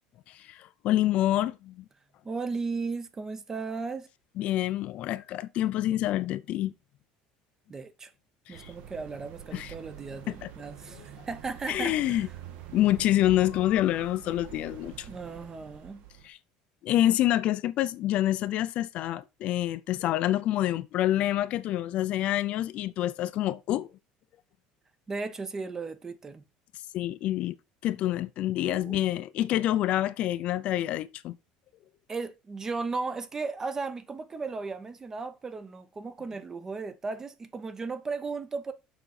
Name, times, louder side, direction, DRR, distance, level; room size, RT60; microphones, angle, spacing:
voice 1, 0.3-1.8 4.4-6.7 8.5-8.7 9.5-9.7 10.3-10.5 11.7-12.3 12.7-15.1 16.2-16.4 16.8-23.9 26.9-27.5 27.8-31.4, left 13 dB, 50° left, 0.5 m, -27 dB
voice 2, 2.2-4.1 7.7-8.1 8.5-12.3 15.1-16.0 25.1-26.4 28.6-29.0 32.1-38.7, right 4 dB, 20° right, 0.7 m, -36 dB
sound 1, 8.5-16.3, right 10 dB, 65° right, 1.3 m, -46 dB
7.0 x 5.1 x 4.2 m
cardioid pair, 150°, 3 cm